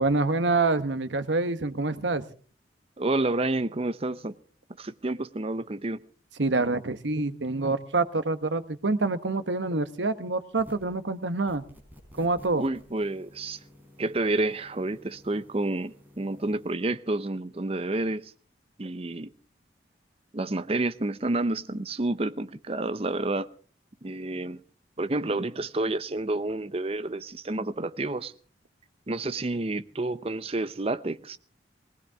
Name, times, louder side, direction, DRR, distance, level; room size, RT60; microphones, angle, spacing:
voice 1, 0.0-2.2 6.4-11.6 12.2-12.7, right 3 dB, 90° right, 1.1 m, -26 dB
voice 2, 3.0-4.3 4.8-6.0 12.6-13.6 14.0-18.3 18.8-19.3 20.3-23.5 24.0-24.6 25.0-28.3 29.1-31.4, right 2 dB, 35° right, 0.7 m, -29 dB
sound 1, 10.6-11.0 11.5-16.7, left 1 dB, 10° right, 4.1 m, -53 dB
19.5 x 19.0 x 3.6 m
head